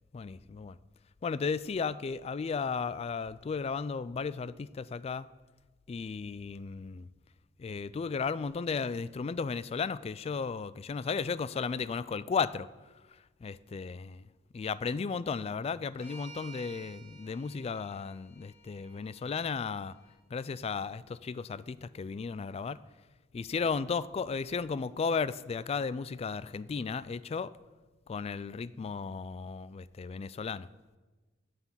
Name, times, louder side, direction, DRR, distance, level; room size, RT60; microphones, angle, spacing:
voice 1, 0.1-0.8 1.2-5.3 5.9-7.1 7.6-12.7 13.1-14.2 14.5-19.9 20.3-22.8 23.3-27.5 28.1-30.7, left 5 dB, 30° left, 17 dB, 0.3 m, -34 dB
sound 1, 16.0-20.2, right 3 dB, 55° left, 4.2 m, -53 dB
8.2 x 7.7 x 7.4 m, 1.2 s
head